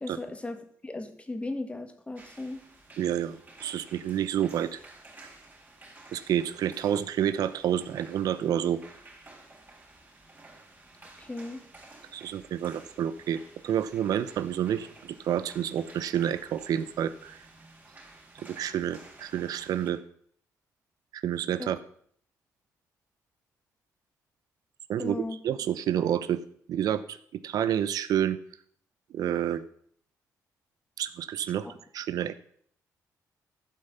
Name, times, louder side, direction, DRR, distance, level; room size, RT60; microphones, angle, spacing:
voice 1, 0.0-2.6 11.2-11.6 21.6-21.7 25.0-25.4 31.6-31.8, left 2 dB, 20° left, 8 dB, 1.6 m, -36 dB
sound 1, 2.1-19.9, right 2 dB, 25° right, 3.9 m, -53 dB
voice 2, 3.0-4.8 6.1-8.8 12.1-17.4 18.4-20.0 21.1-21.8 24.9-26.4 26.7-27.2 27.4-28.4 29.1-29.6 31.0-31.7 31.9-32.4, right 10 dB, 80° right, 13 dB, 0.6 m, -29 dB
12.0 x 5.7 x 6.7 m, 0.62 s
cardioid pair, 90°, 6 cm